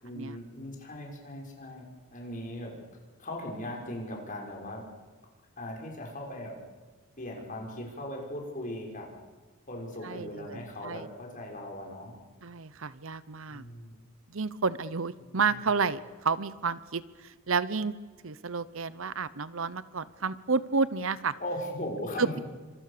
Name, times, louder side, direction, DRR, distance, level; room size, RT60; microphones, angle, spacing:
voice 1, 0.0-2.7 3.2-4.8 5.6-6.5 7.2-9.1 9.7-12.2 13.5-14.0 15.2-15.4 21.4-22.4, left 1 dB, 40° left, 0 dB, 6.1 m, -39 dB
voice 2, 10.0-11.1 12.4-13.6 14.3-17.9 18.2-21.3 22.2-22.4, right 5 dB, 65° right, 16 dB, 0.9 m, -31 dB
28.5 x 26.0 x 6.8 m, 1.4 s
head